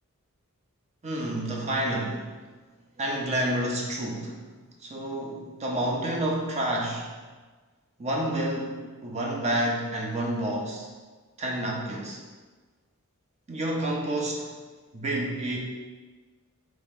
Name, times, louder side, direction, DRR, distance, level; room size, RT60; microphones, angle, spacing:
voice 1, 1.0-2.3 3.0-4.4 4.8-7.1 8.0-10.9 11.4-12.2 13.5-14.5 14.9-15.6, right 1 dB, 30° right, -1 dB, 0.5 m, -29 dB
3.0 x 2.7 x 3.5 m, 1.4 s
head